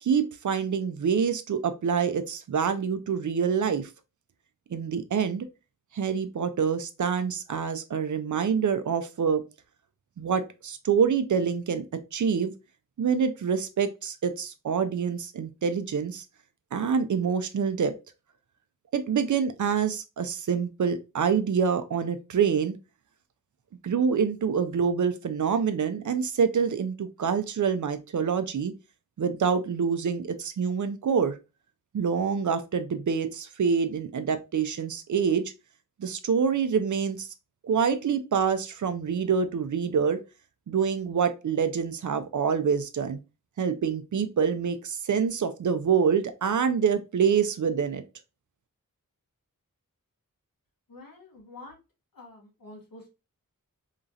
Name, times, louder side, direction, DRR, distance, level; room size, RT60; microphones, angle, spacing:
voice 1, 0.0-3.9 4.7-5.5 5.9-9.4 10.2-11.8 12.1-12.5 13.0-16.2 16.7-17.9 18.9-22.7 23.8-28.7 29.2-31.4 31.9-35.4 36.0-37.3 37.6-40.2 40.7-43.2 43.6-48.0, right 6 dB, 60° right, 0.5 m, -26 dB
voice 2, 50.9-51.8 52.1-53.1, left 2 dB, 80° left, 1.1 m, -47 dB
2.9 x 2.4 x 2.6 m
wide cardioid pair, 50°, 34 cm